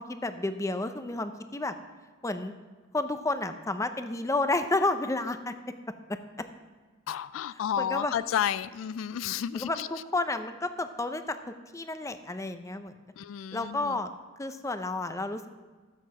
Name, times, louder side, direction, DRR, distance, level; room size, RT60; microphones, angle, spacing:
voice 1, 0.0-1.7 2.2-2.5 2.9-5.5 6.1-6.2 7.8-8.1 9.5-11.4 11.7-12.9 13.5-14.1 14.4-15.5, left 2 dB, 15° left, 9 dB, 0.5 m, -31 dB
voice 2, 7.1-9.9 13.2-14.0, left 9 dB, 80° left, 16 dB, 0.3 m, -31 dB
13.5 x 7.6 x 4.9 m, 1.3 s
head